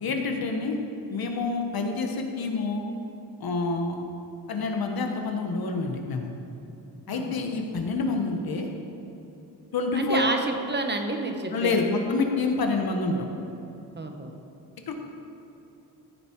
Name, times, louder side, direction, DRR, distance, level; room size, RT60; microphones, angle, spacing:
voice 1, 0.0-0.8 1.1-2.8 3.4-4.0 4.5-6.3 7.1-8.7 9.7-10.3 11.5-13.3 14.9-15.0, left 3 dB, 60° left, 3 dB, 1.4 m, -27 dB
voice 2, 7.1-7.5 9.9-11.8 14.0-14.4, right 2 dB, 25° right, 4 dB, 1.0 m, -30 dB
15.0 x 6.9 x 4.6 m, 3.0 s
cardioid pair, 110°, 40 cm